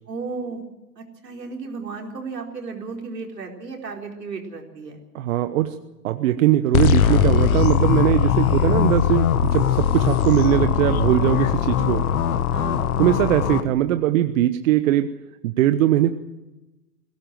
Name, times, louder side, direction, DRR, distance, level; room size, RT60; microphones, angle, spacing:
voice 1, 0.1-0.6 1.0-5.0 12.5-12.9, right 4 dB, 80° right, 2 dB, 4.5 m, -34 dB
voice 2, 5.1-5.8 6.0-12.0 13.0-15.1 15.4-16.2, right 13 dB, 55° right, 9 dB, 1.2 m, -20 dB
sound 1, 6.7-13.6, left 8 dB, 60° left, 1.7 m, -20 dB
21.5 x 17.0 x 7.7 m, 1.0 s
hypercardioid pair, 105°, 48 cm